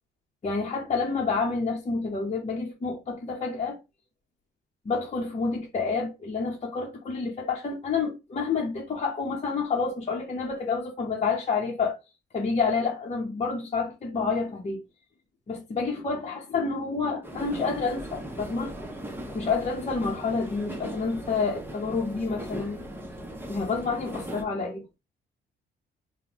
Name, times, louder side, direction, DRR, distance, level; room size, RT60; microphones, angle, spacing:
voice 1, 0.4-3.8 4.8-12.0 12.3-14.8 15.5-18.7 19.3-22.8 23.5-24.8, left 4 dB, 35° left, 0.9 m, -29 dB
sound 1, 17.2-24.4, right 1 dB, 10° right, 0.9 m, -39 dB
3.6 x 2.2 x 2.9 m
cardioid pair, 90°, 20 cm